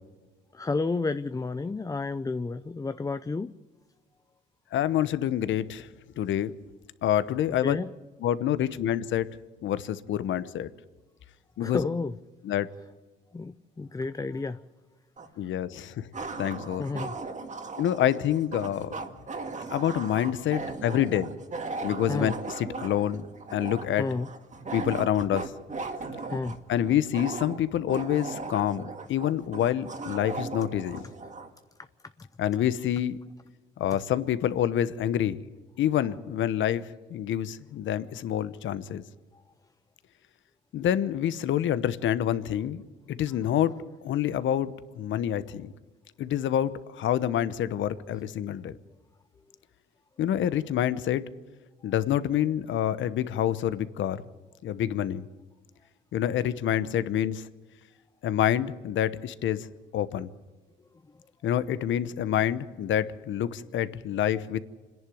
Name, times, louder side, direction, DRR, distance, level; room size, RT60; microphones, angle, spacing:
voice 1, 0.5-3.5 7.6-7.9 11.6-12.1 13.3-14.6 16.8-17.1 22.1-22.3 24.0-24.3 26.3-26.6, left 3 dB, 15° left, 0.6 m, -31 dB
voice 2, 4.7-5.9 6.2-6.5 7.0-7.8 8.2-9.3 9.6-10.7 11.6-11.9 12.4-12.7 15.4-16.1 16.3-16.9 17.8-18.9 19.7-21.3 21.8-23.2 23.5-24.1 24.7-25.5 26.7-31.0 32.4-33.2 33.8-35.4 35.8-39.0 40.7-42.8 43.1-45.7 46.2-48.8 50.2-51.2 51.8-54.2 54.6-55.3 56.1-57.4 58.2-59.7 59.9-60.3 61.4-64.6, left 10 dB, 75° left, 1.0 m, -27 dB
sound 1, 15.2-15.3 16.1-31.5, right 3 dB, 40° right, 2.0 m, -37 dB
26.5 x 11.0 x 9.3 m
cardioid pair, 90°, 20 cm